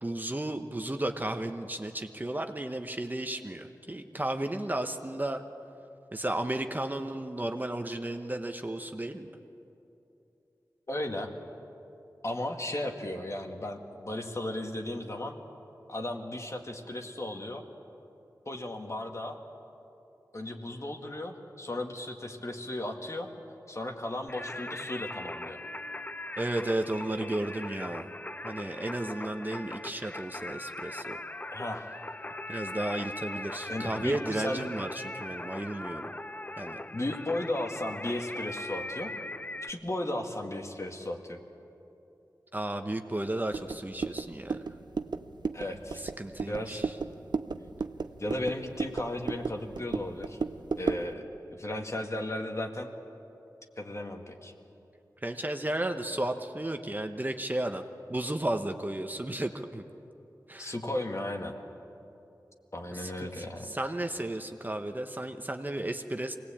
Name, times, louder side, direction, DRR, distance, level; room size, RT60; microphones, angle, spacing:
voice 1, 0.0-5.4 6.1-9.3 26.4-28.1 28.4-31.2 32.5-36.1 36.6-36.8 42.5-44.6 46.0-47.0 55.2-57.8 58.1-59.8 60.5-60.7 62.9-66.4, right 1 dB, 25° right, 6 dB, 1.1 m, -33 dB
voice 2, 10.9-11.3 12.2-15.4 15.9-17.6 18.5-19.4 20.3-23.3 23.7-25.6 31.5-31.9 33.7-34.7 36.9-39.1 39.6-41.4 45.5-46.0 46.5-46.8 48.2-50.4 50.8-51.2 51.5-52.9 53.8-54.5 60.6-61.5 62.7-63.7, left 1 dB, 45° left, 3 dB, 2.0 m, -35 dB
Singing, 24.3-39.7, left 1 dB, 20° left, 0.5 m, -40 dB
sound 1, 43.5-51.1, right 4 dB, 90° right, 0.7 m, -35 dB
24.5 x 19.0 x 8.7 m, 2.9 s
wide cardioid pair, 70°, 7 cm